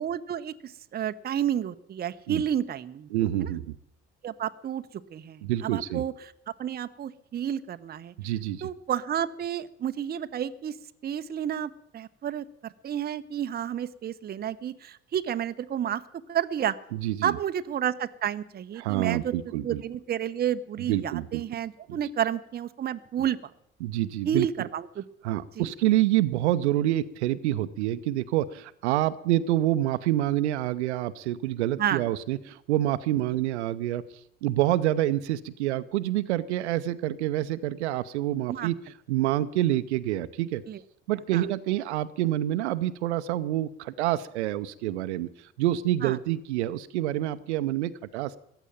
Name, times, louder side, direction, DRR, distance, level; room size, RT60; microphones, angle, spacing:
voice 1, 0.0-3.1 3.4-3.5 4.2-6.3 6.6-8.1 8.6-10.8 11.0-16.0 16.3-16.7 17.2-23.5 24.2-25.0 25.6-25.7 31.8-32.0 38.5-38.7 40.7-40.8 41.3-41.4 46.0-46.2, right 9 dB, 25° right, 12 dB, 0.7 m, -31 dB
voice 2, 3.1-3.7 5.4-6.0 8.2-8.7 16.9-17.4 18.8-19.8 20.9-21.4 21.9-22.0 23.8-24.7 25.2-34.0 34.4-38.8 39.1-40.6 41.1-48.4, right 14 dB, 70° right, 14 dB, 0.7 m, -27 dB
14.5 x 9.0 x 8.9 m, 0.76 s
figure-of-eight pair, 55°, 35 cm